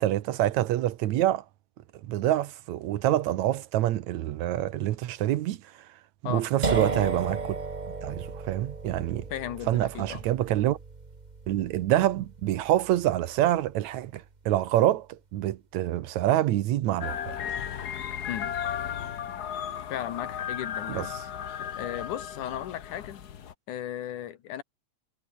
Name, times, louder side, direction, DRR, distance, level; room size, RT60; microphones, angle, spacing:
voice 1, 0.0-1.4 2.0-5.6 6.2-7.6 8.0-9.3 9.7-10.8 11.5-17.3 20.9-21.1, right 13 dB, 75° right, 2.2 m, -26 dB
sound 1, 6.6-14.2, right 4 dB, 40° right, 0.5 m, -35 dB
voice 2, 9.3-10.3 18.3-18.6 19.9-21.1 21.6-23.2 23.7-24.6, left 11 dB, 85° left, 3.0 m, -36 dB
sound 2, 17.0-23.5, left 9 dB, 70° left, 0.9 m, -35 dB
omnidirectional pair, 3.4 m